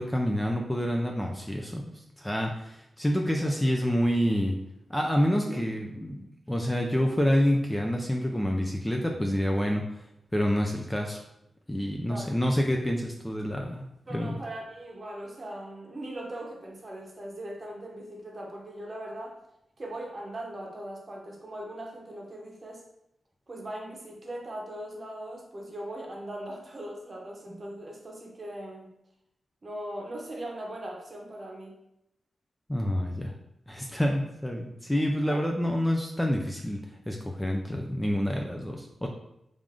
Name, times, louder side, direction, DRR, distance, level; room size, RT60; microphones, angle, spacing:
voice 1, 0.0-4.6 4.9-9.8 10.3-11.2 11.7-13.8 14.1-14.4 27.5-27.6 32.7-33.3 33.7-39.1, equal, 10° left, 1 dB, 0.3 m, -28 dB
voice 2, 14.1-19.4 19.8-22.8 23.5-28.9 29.6-31.8 35.2-35.5, right 1 dB, 35° right, 0 dB, 0.8 m, -40 dB
3.4 x 2.5 x 3.6 m, 0.82 s
wide cardioid pair, 100°, 0 cm